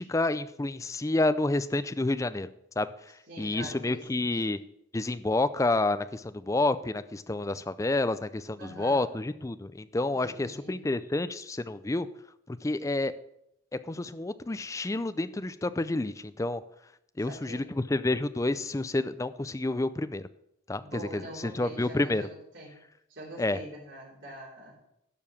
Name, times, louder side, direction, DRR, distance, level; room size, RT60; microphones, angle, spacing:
voice 1, 0.0-2.5 2.8-2.9 3.4-4.6 4.9-12.1 12.5-13.1 13.9-16.6 17.2-20.3 20.7-22.3 23.4-23.6, left 2 dB, 15° left, 13 dB, 0.4 m, -29 dB
voice 2, 3.3-4.5 8.6-9.0 10.2-10.8 17.2-17.7 20.8-22.8 23.1-24.8, right 1 dB, 70° right, -6 dB, 3.3 m, -44 dB
12.0 x 4.8 x 7.1 m, 0.79 s
head